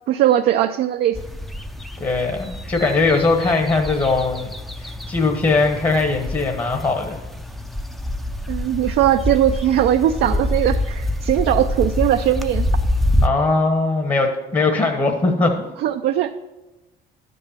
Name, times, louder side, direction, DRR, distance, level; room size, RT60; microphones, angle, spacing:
voice 1, 0.1-1.2 8.5-12.7 15.8-16.3, right 11 dB, 75° right, 6 dB, 0.5 m, -19 dB
sound 1, 1.1-13.3, left 1 dB, ahead, 0.6 m, -26 dB
voice 2, 2.0-4.5 4.8-7.2 13.2-15.7, left 3 dB, 25° left, 3 dB, 1.2 m, -20 dB
12.0 x 5.4 x 7.3 m, 1.1 s
cardioid pair, 110°, 17 cm